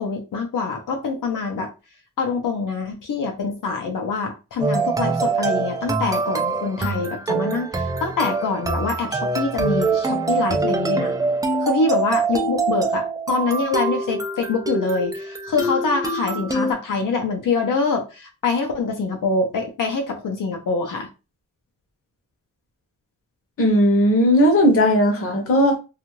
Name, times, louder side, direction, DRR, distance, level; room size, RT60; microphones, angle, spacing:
voice 1, 0.0-1.7 2.2-11.1 11.6-21.1, left 4 dB, 75° left, 0.6 m, -25 dB
sound 1, 4.6-16.7, right 3 dB, 10° right, 0.3 m, -24 dB
voice 2, 23.6-25.8, equal, 45° left, 0.8 m, -16 dB
2.6 x 2.4 x 3.0 m
wide cardioid pair, 160°, 32 cm